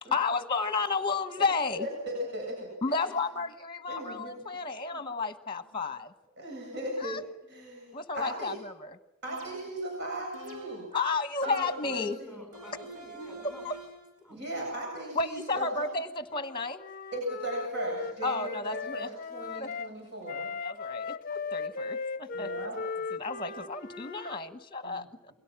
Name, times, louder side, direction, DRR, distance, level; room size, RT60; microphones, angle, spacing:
voice 1, 0.0-1.9 2.8-6.1 7.0-7.2 7.9-9.0 10.9-12.2 13.6-13.8 15.1-16.8 18.2-19.1 19.6-19.7 20.6-22.7 23.1-25.3, left 4 dB, 25° left, 10 dB, 1.2 m, -32 dB
voice 2, 1.8-3.0 3.9-4.4 4.9-5.0 6.4-7.2 7.5-8.5 9.2-10.9 11.4-12.4 14.3-15.9 17.1-20.5 22.3-22.8 24.8-25.0, right 1 dB, 50° right, -1 dB, 7.8 m, -37 dB
sound 1, 9.2-9.9 10.3-11.0 11.4-12.1 12.5-14.1, right 1 dB, 75° right, 5.7 m, -46 dB
voice 3, 11.8-13.7 14.2-14.7, left 2 dB, 5° right, 2 dB, 5.7 m, -48 dB
Wind instrument woodwind instrument, 16.3-19.9 20.3-24.4, left 4 dB, 40° left, 0.8 m, -38 dB
29.5 x 22.0 x 6.1 m, 0.92 s
head